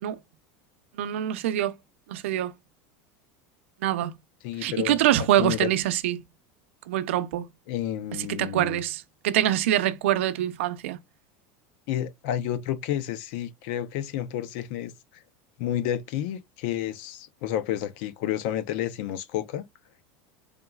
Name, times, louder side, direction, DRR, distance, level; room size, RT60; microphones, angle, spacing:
voice 1, 1.0-1.7 2.1-2.5 3.8-4.2 4.6-6.2 6.9-7.5 8.2-11.0, right 12 dB, 90° right, 0.6 m, -25 dB
voice 2, 4.4-5.7 7.7-8.8 11.9-15.2 15.6-19.7, left 11 dB, 60° left, 0.6 m, -30 dB
3.9 x 3.6 x 2.3 m
supercardioid pair, 160°, 7 cm